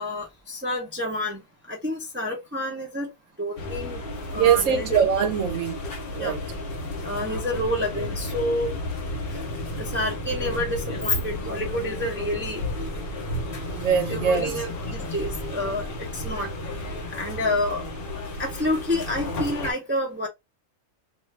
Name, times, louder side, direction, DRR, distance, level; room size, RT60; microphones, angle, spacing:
voice 1, 0.0-1.4 1.7-3.1 3.4-4.0 4.3-4.9 6.2-6.4 7.0-8.7 9.3-9.4 9.8-12.6 14.1-15.9 16.1-16.5 17.1-17.8 18.4-20.3, left 1 dB, 15° right, 0.5 m, -28 dB
sound 1, 3.6-19.7, left 1 dB, 50° left, 0.9 m, -33 dB
voice 2, 4.3-5.8 6.1-6.4 13.7-14.5, right 7 dB, 80° right, 1.0 m, -22 dB
2.5 x 2.4 x 3.2 m
omnidirectional pair, 1.3 m